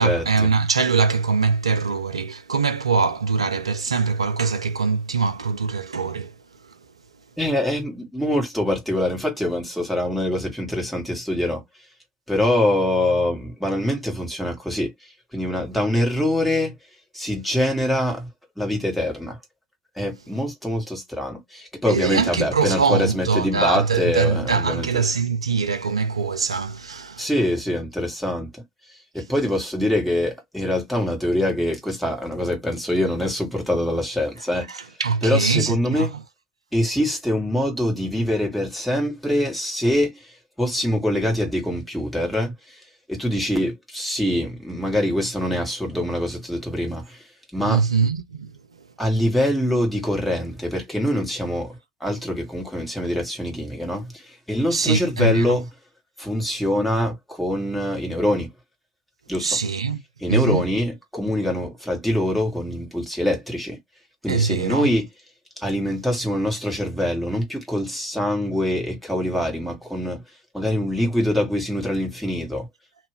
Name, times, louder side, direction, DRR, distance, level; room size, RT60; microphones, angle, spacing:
voice 1, 0.0-6.3 21.9-27.3 34.7-36.1 47.6-48.5 54.7-55.5 59.4-60.0 60.3-60.7 64.3-64.9, right 5 dB, 85° right, 0.3 m, -22 dB
voice 2, 7.4-11.6 12.3-14.9 15.3-16.7 17.1-18.3 18.6-19.4 20.0-24.9 27.2-28.6 29.1-34.7 35.2-36.1 36.7-40.1 40.6-42.8 43.1-47.2 47.5-47.8 49.0-55.7 56.2-58.5 59.3-59.6 60.2-63.8 64.2-65.0 65.6-70.2 70.5-72.7, left 1 dB, ahead, 1.7 m, -24 dB
2.7 x 2.6 x 3.3 m
figure-of-eight pair, 65°, 3 cm